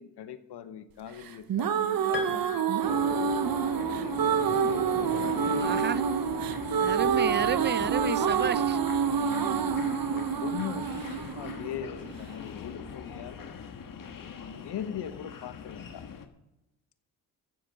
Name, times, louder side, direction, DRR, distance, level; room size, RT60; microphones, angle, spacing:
voice 1, 0.0-5.3 9.0-13.4 14.1-16.1, left 9 dB, 70° left, 1.2 m, -42 dB
sound 1, 1.3-12.3, right 7 dB, 55° right, 1.0 m, -27 dB
Piano, 2.1-3.8, left 4 dB, 30° left, 2.8 m, -40 dB
sound 2, 2.8-16.3, left 6 dB, 50° left, 1.5 m, -41 dB
voice 2, 5.6-6.0 6.8-8.8, right 6 dB, 25° right, 0.6 m, -31 dB
13.5 x 7.6 x 6.6 m
supercardioid pair, 65°, 41 cm